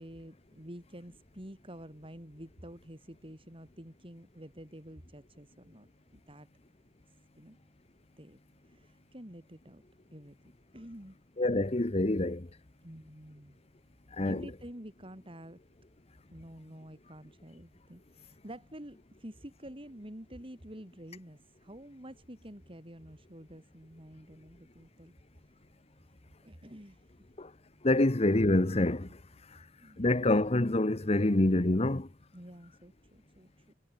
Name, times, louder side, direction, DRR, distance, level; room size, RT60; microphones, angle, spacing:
voice 1, 0.0-6.5 7.4-7.6 8.2-9.8 10.1-10.4 10.7-11.2 12.8-13.6 14.2-15.6 16.3-25.1 25.4-25.6 26.4-27.1 29.1-29.2 29.8-30.1 32.3-33.7, equal, 30° right, 5.6 m, -49 dB
voice 2, 11.4-12.5 14.1-14.4 27.4-27.5 27.8-29.1 30.0-32.1, left 2 dB, 35° left, 1.1 m, -26 dB
head